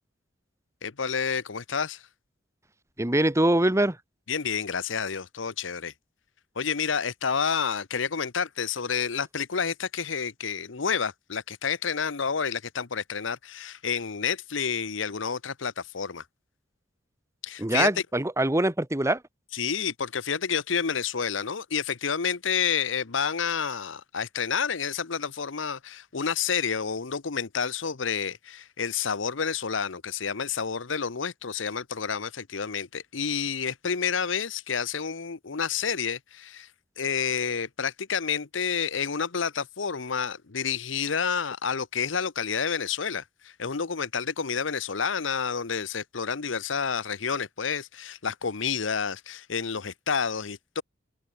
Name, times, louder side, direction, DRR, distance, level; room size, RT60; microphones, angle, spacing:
voice 1, 0.8-2.0 4.3-5.9 6.6-16.2 17.4-17.9 19.5-36.7 37.0-50.8, left 6 dB, 80° left, 0.9 m, -29 dB
voice 2, 3.0-4.0 17.6-19.2, right 1 dB, 15° right, 1.5 m, -23 dB
open air
head